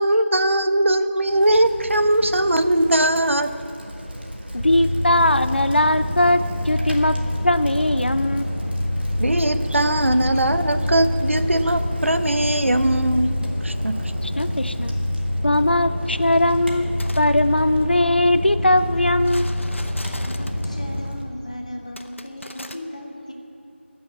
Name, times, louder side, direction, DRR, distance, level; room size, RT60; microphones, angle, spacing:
voice 1, 0.0-3.5 9.2-14.1, right 1 dB, 75° right, 10 dB, 0.7 m, -20 dB
Bicycle, 1.3-21.2, equal, 55° right, 1.7 m, -35 dB
voice 2, 4.5-6.4 6.7-7.1 7.4-8.5 14.2-14.9 15.4-19.5, left 1 dB, 55° left, 12 dB, 0.4 m, -20 dB
sound 1, 4.6-21.0, left 1 dB, 5° right, 0.7 m, -26 dB
sound 2, 16.8-17.3 19.2-20.8 22.0-22.8, left 1 dB, 75° left, 0.8 m, -39 dB
voice 3, 20.1-23.3, left 1 dB, 30° left, 2 dB, 1.2 m, -36 dB
14.0 x 6.3 x 8.1 m, 2.8 s
figure-of-eight pair, 180°, 7 cm